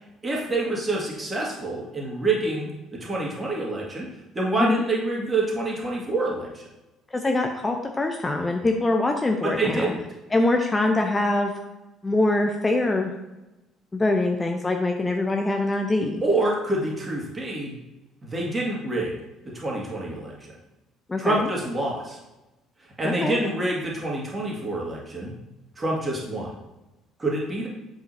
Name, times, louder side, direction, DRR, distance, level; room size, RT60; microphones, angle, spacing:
voice 1, 0.2-2.7 3.0-4.1 4.3-6.6 9.6-10.0 16.2-17.8 18.2-19.2 19.4-20.5 21.2-22.2 23.0-25.3 25.8-26.5 27.2-27.7, right 2 dB, 25° right, -3 dB, 2.1 m, -27 dB
voice 2, 7.1-9.9 10.3-11.5 12.0-13.1 13.9-16.2 21.1-21.5 23.0-23.4, left 2 dB, 20° left, 3 dB, 0.6 m, -23 dB
7.7 x 5.0 x 2.7 m, 1.0 s
figure-of-eight pair, 50°, 0 cm